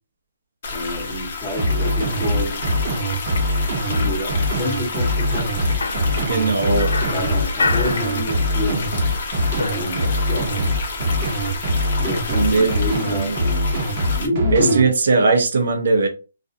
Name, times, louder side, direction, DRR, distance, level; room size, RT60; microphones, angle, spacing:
sound 1, 0.6-14.3, left 3 dB, 45° left, 0.7 m, -30 dB
voice 1, 0.7-2.6 3.8-5.6 7.1-8.9 9.7-10.5 12.0-13.7 14.2-14.9, left 1 dB, 10° left, 1.0 m, -27 dB
sound 2, 1.6-14.8, equal, 35° right, 0.8 m, -22 dB
sound 3, 5.8-8.8 9.1-10.6, left 3 dB, 90° left, 0.4 m, -28 dB
voice 2, 6.3-6.9 12.3-12.8 13.0-13.3 14.5-16.1, right 3 dB, 65° right, 0.6 m, -18 dB
2.4 x 2.2 x 2.6 m
hypercardioid pair, 170°, 0 cm